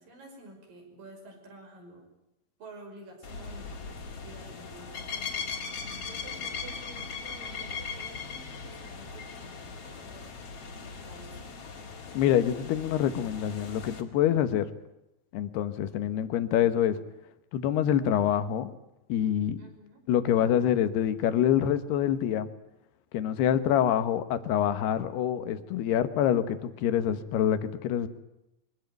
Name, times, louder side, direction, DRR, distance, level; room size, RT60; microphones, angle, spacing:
voice 1, 0.0-2.1 2.6-5.2 6.0-10.5 10.8-11.5 19.6-20.0, right 2 dB, 60° right, 3 dB, 7.3 m, -50 dB
sound 1, 3.2-14.0, left 5 dB, 40° left, 3.0 m, -39 dB
voice 2, 12.1-14.7 15.3-17.0 17.5-18.7 19.1-19.6 20.1-22.5 23.1-28.1, left 10 dB, 90° left, 11 dB, 3.3 m, -26 dB
24.0 x 18.0 x 9.2 m, 0.90 s
omnidirectional pair, 4.5 m